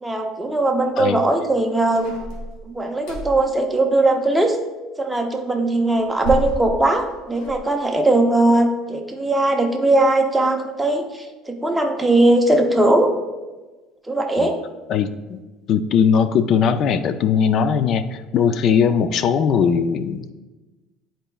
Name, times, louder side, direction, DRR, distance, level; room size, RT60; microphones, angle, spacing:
voice 1, 0.0-2.2 2.7-4.6 5.0-13.1 14.1-14.5, right 2 dB, 5° right, 2 dB, 0.7 m, -19 dB
sound 1, 1.9-3.5 5.9-7.6, equal, 70° left, 1.5 m, -31 dB
voice 2, 14.9-15.4 15.7-20.3, left 7 dB, 45° left, 11 dB, 0.4 m, -19 dB
10.0 x 4.4 x 2.3 m, 1.2 s
cardioid pair, 150°, 0 cm